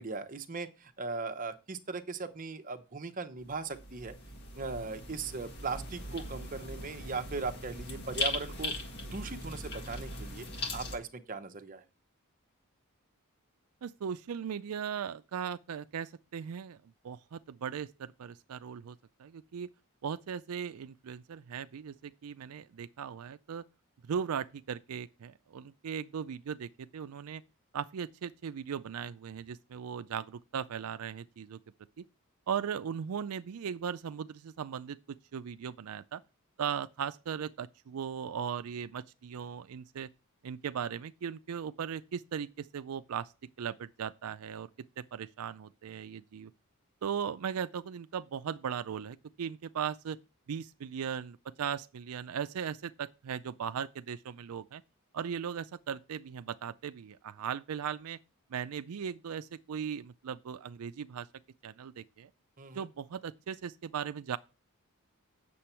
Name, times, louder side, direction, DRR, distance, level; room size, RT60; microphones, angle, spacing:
voice 1, 0.0-4.1 4.6-8.7 9.0-10.5 10.7-11.8 62.6-62.9, right 4 dB, 40° right, 0.8 m, -38 dB
sound 1, 3.4-11.0, left 2 dB, 50° left, 1.7 m, -39 dB
voice 2, 13.8-16.8 17.0-19.7 20.0-23.6 24.0-27.4 27.7-31.6 32.0-32.1 32.5-36.2 36.6-40.1 40.4-43.3 43.6-44.7 45.0-46.5 47.0-50.2 50.5-54.8 55.1-58.2 58.5-61.3 61.6-62.3 62.7-64.4, right 7 dB, 85° right, 0.4 m, -38 dB
8.5 x 6.8 x 4.4 m
head